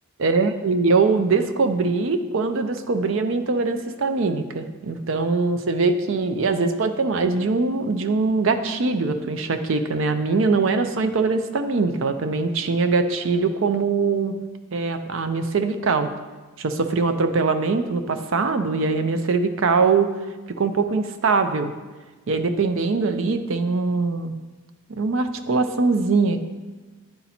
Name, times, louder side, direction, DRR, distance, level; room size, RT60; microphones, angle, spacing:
voice 1, 0.2-14.4 14.7-16.1 16.6-20.1 20.6-21.7 22.3-24.3 24.9-26.4, right 4 dB, 60° right, 9 dB, 0.5 m, -22 dB
9.8 x 4.1 x 4.2 m, 1.3 s
head